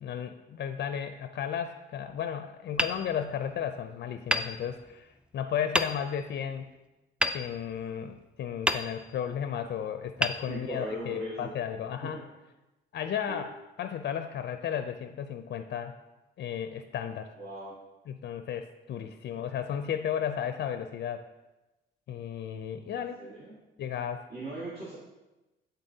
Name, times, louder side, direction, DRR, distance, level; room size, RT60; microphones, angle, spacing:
voice 1, 0.0-6.7 7.3-12.2 12.9-13.5 13.8-15.9 16.4-17.3 18.1-21.2 22.1-23.2 23.8-24.2, left 8 dB, 60° left, 8 dB, 0.5 m, -34 dB
Hammer, 2.7-3.8 4.3-5.2 5.7-6.4 7.2-8.2 8.6-9.4 10.2-11.1, equal, 5° right, 0.4 m, -32 dB
voice 2, 10.5-11.5 12.0-12.3 13.3-13.4 17.4-17.7 22.9-23.6 24.3-25.0, right 1 dB, 50° right, -5 dB, 1.7 m, -39 dB
11.5 x 4.0 x 2.7 m, 1.0 s
cardioid pair, 90°, 20 cm